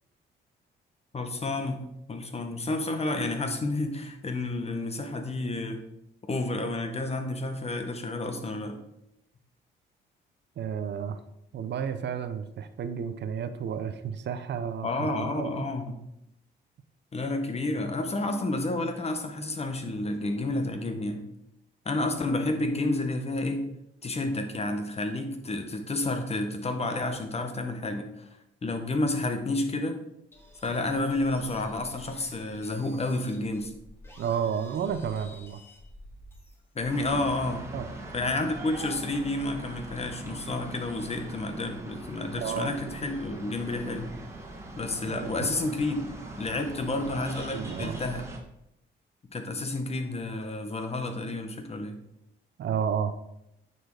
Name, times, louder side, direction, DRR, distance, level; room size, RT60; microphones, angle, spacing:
voice 1, 1.1-1.8 2.1-5.8 6.2-8.8 14.8-16.0 17.1-21.2 21.8-23.7 24.0-28.1 28.6-30.0 30.6-33.7 36.7-37.7 38.1-44.1 44.8-46.0 46.4-48.2 49.3-52.0, left 2 dB, 30° left, 6 dB, 1.3 m, -30 dB
voice 2, 10.6-11.2 11.5-15.7 34.2-35.6 37.7-37.9 42.4-42.7 45.1-45.5 47.5-48.0 52.6-53.1, right 7 dB, 60° right, 10 dB, 0.7 m, -32 dB
sound 1, 30.3-37.1, left 1 dB, 10° left, 1.9 m, -50 dB
sound 2, 36.9-48.4, right 2 dB, 15° right, 1.7 m, -41 dB
9.0 x 4.4 x 4.8 m, 0.83 s
cardioid pair, 90°, 20 cm